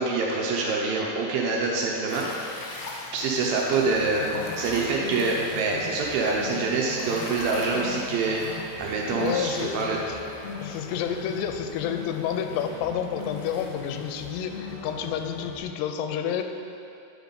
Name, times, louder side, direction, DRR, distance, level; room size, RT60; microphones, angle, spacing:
voice 1, 0.0-2.7 3.1-10.0, right 3 dB, 80° right, -2 dB, 2.2 m, -26 dB
sound 1, 2.1-14.3, left 2 dB, 70° left, 1.7 m, -42 dB
sound 2, 3.8-15.6, left 5 dB, 50° left, 1.0 m, -39 dB
voice 2, 9.2-9.8 10.1-10.2 10.6-16.4, left 8 dB, 90° left, 7 dB, 2.6 m, -30 dB
9.6 x 4.0 x 5.2 m, 2.7 s
omnidirectional pair, 4.6 m